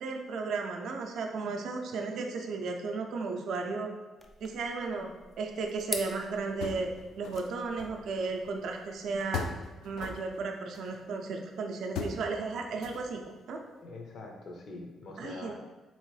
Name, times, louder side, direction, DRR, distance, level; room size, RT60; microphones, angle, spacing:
voice 1, 0.0-3.9 4.4-5.1 5.4-6.9 7.2-9.4 9.8-13.2 13.5-13.6 15.2-15.5, right 4 dB, 70° right, 2 dB, 0.4 m, -34 dB
sound 1, 4.2-9.2, left 2 dB, 20° left, 0.5 m, -45 dB
sound 2, 6.6-7.5 7.8-8.8 9.3-11.0 12.0-12.2 12.8-13.3, left 5 dB, 85° left, 0.3 m, -38 dB
voice 2, 13.8-15.5, left 3 dB, 65° left, 1 dB, 0.7 m, -44 dB
3.6 x 3.0 x 3.2 m, 1.2 s
cardioid pair, 90°, 0 cm